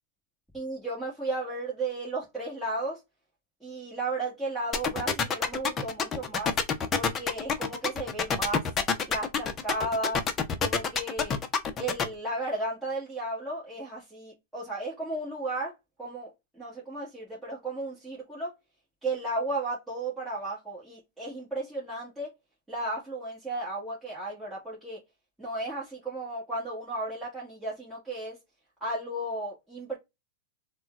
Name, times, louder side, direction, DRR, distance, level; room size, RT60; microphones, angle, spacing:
voice 1, 0.5-3.0 3.6-6.5 7.0-8.7 9.1-10.2 10.6-11.3 11.8-15.7 16.0-16.3 16.6-18.5 19.0-22.3 22.7-25.0 25.4-28.4 28.8-30.0, right 2 dB, ahead, 1.5 m, -34 dB
sound 1, 4.7-12.0, left 6 dB, 25° left, 0.6 m, -27 dB
3.6 x 2.2 x 2.3 m
hypercardioid pair, 115°, 0 cm